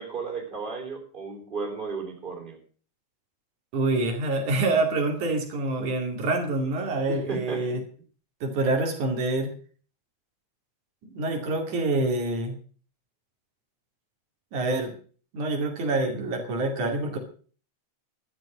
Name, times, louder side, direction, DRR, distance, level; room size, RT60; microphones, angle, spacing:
voice 1, 0.0-2.6 7.1-7.8, right 4 dB, 15° right, 2 dB, 3.8 m, -34 dB
voice 2, 3.7-7.8 8.4-9.5 11.1-12.5 14.5-14.9 15.3-17.2, right 2 dB, 80° right, 2 dB, 4.0 m, -26 dB
12.5 x 11.0 x 6.2 m, 0.42 s
omnidirectional pair, 3.4 m